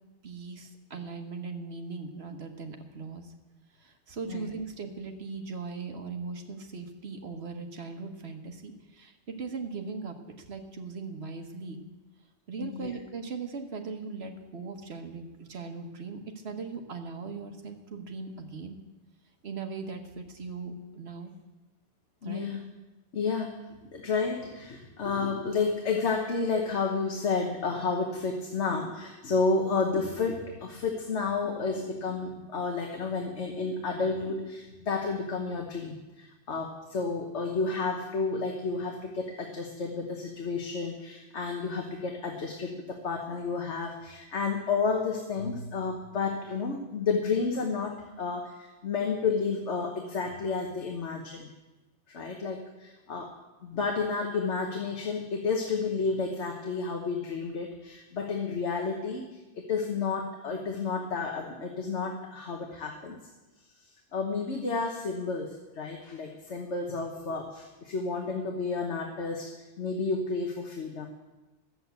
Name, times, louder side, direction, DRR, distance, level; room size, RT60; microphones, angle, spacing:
voice 1, 0.2-3.3 3.8-10.2 10.5-11.8 12.5-18.8 19.4-21.3 22.2-22.5, right 4 dB, 65° right, 4 dB, 1.5 m, -39 dB
voice 2, 12.6-13.0 22.2-22.6 23.1-23.6 23.9-51.5 52.1-53.3 53.6-63.2 64.1-71.1, left 4 dB, 75° left, 2 dB, 1.5 m, -31 dB
12.5 x 7.8 x 8.1 m, 1.1 s
omnidirectional pair, 1.2 m